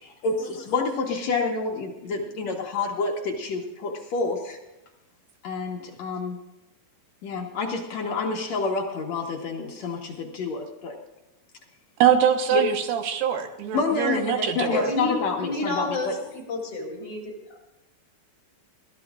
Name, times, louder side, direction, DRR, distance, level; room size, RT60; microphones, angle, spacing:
voice 1, 0.0-4.6 5.4-6.4 7.2-10.9 12.5-12.6 13.7-16.2, left 4 dB, 60° left, 0 dB, 1.9 m, -28 dB
voice 2, 12.0-14.9, right 9 dB, 75° right, 6 dB, 3.0 m, -23 dB
voice 3, 14.7-17.3, left 2 dB, 25° left, -1 dB, 4.3 m, -30 dB
21.5 x 15.0 x 2.5 m, 0.93 s
omnidirectional pair, 4.9 m